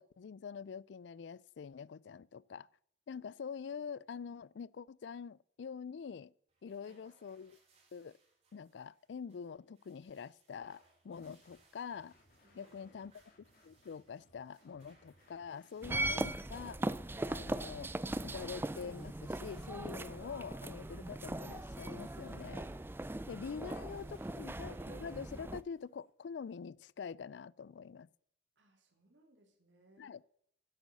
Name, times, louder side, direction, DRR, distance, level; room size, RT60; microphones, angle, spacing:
voice 1, 0.0-2.7 3.1-6.3 6.6-7.6 7.9-8.2 8.5-12.2 12.5-13.1 13.6-16.8 17.3-17.9 18.2-22.7 23.3-28.1 30.0-30.2, left 6 dB, 75° left, 0.4 m, -45 dB
sound 1, 6.5-26.1, right 2 dB, 35° right, 3.7 m, -67 dB
voice 2, 6.7-7.0 12.4-13.0 28.6-30.2, right 1 dB, 85° right, 2.9 m, -68 dB
sound 2, 11.1-11.6 11.9-17.3, left 1 dB, 50° left, 2.8 m, -68 dB
sound 3, 15.8-25.6, right 1 dB, 10° right, 0.4 m, -40 dB
10.5 x 8.3 x 6.6 m
head